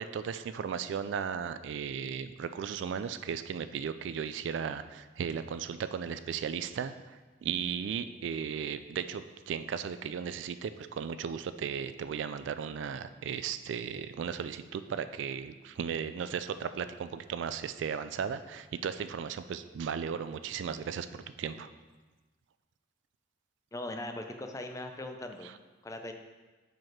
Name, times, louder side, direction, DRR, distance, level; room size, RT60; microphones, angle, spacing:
voice 1, 0.0-21.7 25.4-25.5, right 7 dB, 65° right, 12 dB, 0.3 m, -36 dB
voice 2, 23.7-25.5 25.8-26.1, left 1 dB, 15° left, 5 dB, 0.4 m, -39 dB
5.8 x 5.2 x 4.5 m, 1.3 s
head